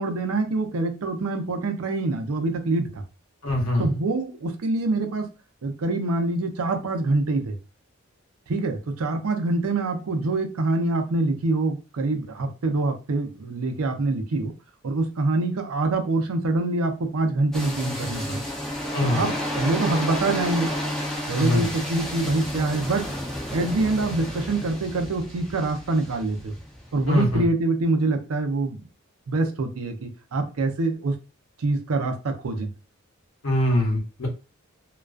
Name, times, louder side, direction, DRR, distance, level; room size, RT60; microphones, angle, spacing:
voice 1, 0.0-3.0 3.8-5.3 5.6-7.6 8.5-14.5 14.8-18.4 19.0-20.7 21.3-23.0 23.5-26.6 26.9-28.8 29.3-31.1 31.6-32.7, right 2 dB, 85° right, 0.5 m, -25 dB
voice 2, 3.4-3.9 18.9-19.2 21.3-21.7 27.1-27.4 33.4-34.3, left 1 dB, 70° left, 0.9 m, -23 dB
sound 1, 17.5-27.4, equal, ahead, 0.5 m, -31 dB
2.3 x 2.3 x 2.3 m
head